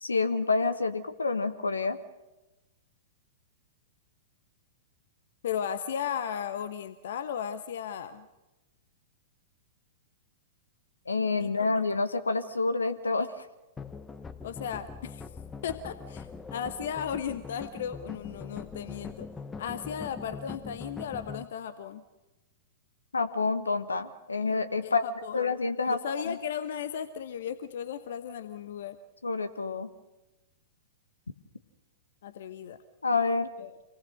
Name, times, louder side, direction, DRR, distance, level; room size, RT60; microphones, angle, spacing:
voice 1, 0.0-2.0 11.1-13.3 23.1-25.0 25.3-26.0 26.3-26.4 29.2-29.9 33.0-33.5, left 3 dB, 75° left, 11 dB, 1.4 m, -28 dB
voice 2, 5.4-8.3 11.4-11.5 14.4-15.2 15.6-19.3 19.6-22.0 24.8-25.4 25.9-29.0 32.2-32.8 33.6-33.8, left 8 dB, 55° left, 12 dB, 1.0 m, -35 dB
sound 1, 13.8-21.4, left 4 dB, 15° left, 1.0 m, -42 dB
26.5 x 19.5 x 6.4 m, 1.1 s
figure-of-eight pair, 100°, 0 cm